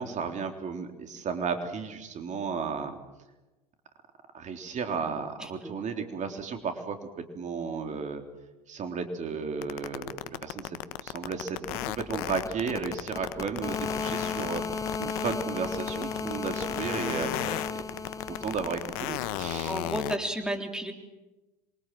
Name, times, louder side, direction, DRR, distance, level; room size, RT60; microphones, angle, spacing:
voice 1, 0.0-3.0 4.3-7.0 7.4-8.2 8.7-11.7 12.0-17.8 18.4-19.8, right 5 dB, 35° right, 5 dB, 3.7 m, -34 dB
voice 2, 5.4-5.8 19.7-20.9, right 1 dB, 5° right, 5 dB, 3.6 m, -32 dB
sound 1, 9.6-20.2, left 16 dB, 65° left, 1.2 m, -34 dB
sound 2, 11.7-19.6, left 4 dB, 15° left, 1.1 m, -36 dB
27.5 x 24.0 x 7.7 m, 1.1 s
hypercardioid pair, 80°, 20 cm